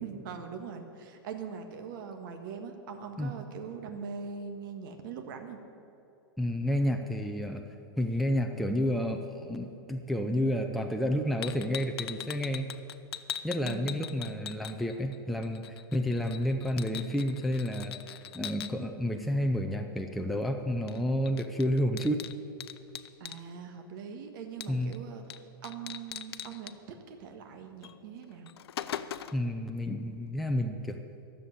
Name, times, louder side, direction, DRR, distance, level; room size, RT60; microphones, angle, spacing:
voice 1, 0.0-5.6 13.6-14.6 23.2-28.5, right 6 dB, 60° right, 5 dB, 1.6 m, -42 dB
voice 2, 6.4-7.7 8.0-12.7 13.4-22.3 24.7-24.9 29.3-31.0, equal, ahead, 3 dB, 0.6 m, -30 dB
sound 1, 11.4-15.2 15.4-18.7 20.9-21.0 21.3-23.4 24.6-25.0 25.3-25.4 25.6-26.7 27.8-27.9 28.3-29.5, left 10 dB, 85° left, 0.6 m, -40 dB
13.0 x 7.5 x 9.9 m, 2.7 s
supercardioid pair, 145°, 13 cm